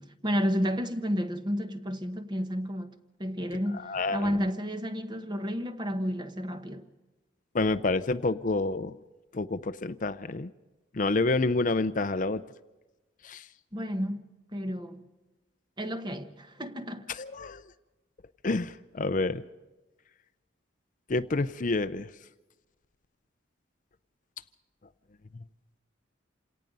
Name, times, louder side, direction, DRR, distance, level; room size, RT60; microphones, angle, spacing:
voice 1, 0.0-2.9 3.2-6.9 13.7-15.0 15.8-17.1, equal, 25° right, 1.1 m, -31 dB
voice 2, 3.9-4.3 7.5-8.9 9.3-10.5 10.9-12.4 13.2-13.4 17.1-17.6 18.4-19.4 21.1-22.1, left 3 dB, 40° left, 0.6 m, -28 dB
27.5 x 18.0 x 5.4 m
head